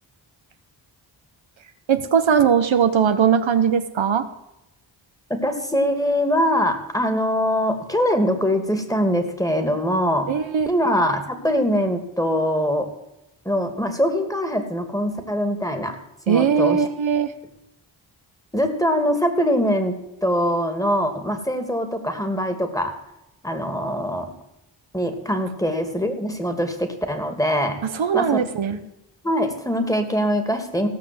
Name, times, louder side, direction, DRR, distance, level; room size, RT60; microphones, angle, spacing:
voice 1, 1.9-4.2 10.3-10.7 16.3-17.3 27.8-28.8, right 7 dB, 70° right, 9 dB, 1.1 m, -19 dB
voice 2, 5.3-10.3 10.7-12.9 13.4-16.0 16.3-16.8 18.5-22.9 23.4-24.3 24.9-27.8 28.1-28.3 29.2-30.9, equal, 5° left, 6 dB, 2.6 m, -23 dB
16.5 x 6.1 x 7.9 m, 0.86 s
cardioid pair, 45°, 48 cm